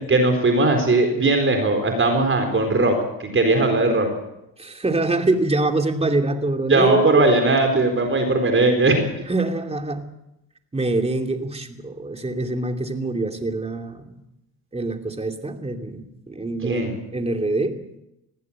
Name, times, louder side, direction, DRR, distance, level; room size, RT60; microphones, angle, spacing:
voice 1, 0.1-2.9 3.2-4.1 6.7-9.0 16.6-17.0, right 2 dB, 30° right, 5 dB, 4.3 m, -19 dB
voice 2, 4.6-7.3 9.3-10.1 10.7-14.2 14.7-17.8, right 2 dB, 15° right, 5 dB, 2.8 m, -25 dB
20.5 x 15.0 x 8.9 m, 0.88 s
cardioid pair, 95°, 39 cm